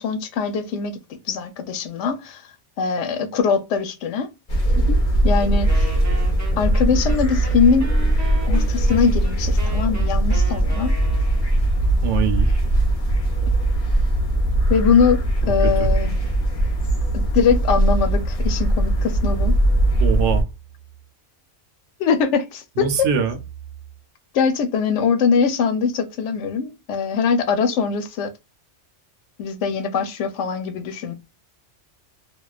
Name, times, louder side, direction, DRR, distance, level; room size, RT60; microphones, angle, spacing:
voice 1, 0.0-2.4 2.8-4.3 4.8-5.0 5.2-5.9 6.6-7.9 8.5-11.0 14.7-16.1 17.1-19.5 22.0-22.9 24.3-28.3 29.4-31.1, left 6 dB, 75° left, 0.9 m, -22 dB
sound 1, 4.5-20.4, right 1 dB, 40° left, 0.6 m, -20 dB
Wind instrument woodwind instrument, 5.7-11.5, right 1 dB, 25° right, 0.4 m, -37 dB
voice 2, 12.0-12.6 15.4-15.9 20.0-20.5 22.8-23.4, right 7 dB, 75° right, 0.9 m, -23 dB
2.4 x 2.2 x 2.3 m
omnidirectional pair, 1.2 m